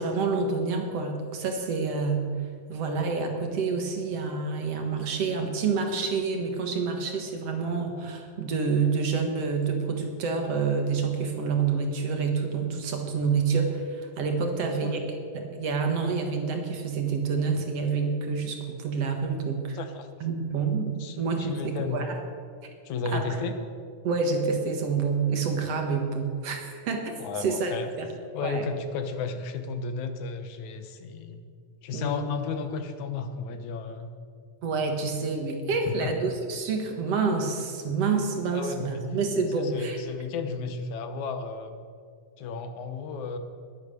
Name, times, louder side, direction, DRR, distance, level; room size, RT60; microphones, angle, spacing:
voice 1, 0.0-2.3 2.7-19.8 20.2-22.2 23.1-23.2 24.0-28.1 28.4-28.7 31.9-32.3 34.6-40.0, right 5 dB, 60° right, 4 dB, 2.4 m, -28 dB
voice 2, 14.4-15.0 19.7-20.1 21.0-22.1 22.9-23.6 27.2-27.9 28.3-31.4 31.8-34.1 35.9-36.1 38.5-39.0 39.6-41.8 42.4-43.4, left 5 dB, 75° left, 8 dB, 2.4 m, -33 dB
20.5 x 8.8 x 6.8 m, 2.2 s
omnidirectional pair, 3.5 m